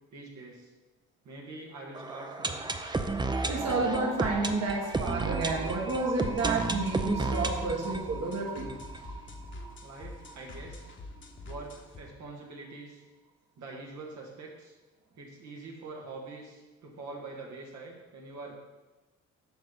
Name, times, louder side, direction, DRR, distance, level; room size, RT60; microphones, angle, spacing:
voice 1, 0.1-0.7 1.2-2.7 9.8-10.9 11.4-13.0 13.6-14.7 15.2-18.5, right 3 dB, 70° right, -2 dB, 1.7 m, -44 dB
sound 1, 1.9-9.7 10.0-10.1 10.3-10.4 10.9-11.0, right 3 dB, 15° right, 0.6 m, -33 dB
voice 2, 3.5-8.8, right 3 dB, 55° right, -1 dB, 1.7 m, -30 dB
sound 2, 5.0-12.0, left 2 dB, 40° left, 1.2 m, -46 dB
9.0 x 5.8 x 3.9 m, 1.1 s
cardioid pair, 90°, 30 cm